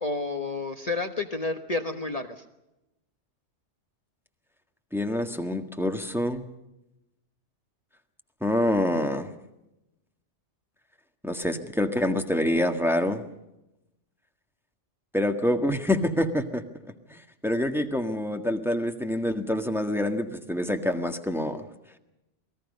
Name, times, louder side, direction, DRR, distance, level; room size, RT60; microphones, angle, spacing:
voice 1, 0.0-2.4, left 3 dB, 35° left, 6 dB, 1.3 m, -30 dB
voice 2, 4.9-6.4 8.4-9.3 11.2-13.2 15.1-16.6 17.1-21.6, left 1 dB, ahead, 6 dB, 1.6 m, -26 dB
28.0 x 20.0 x 5.4 m, 0.92 s
omnidirectional pair, 1.2 m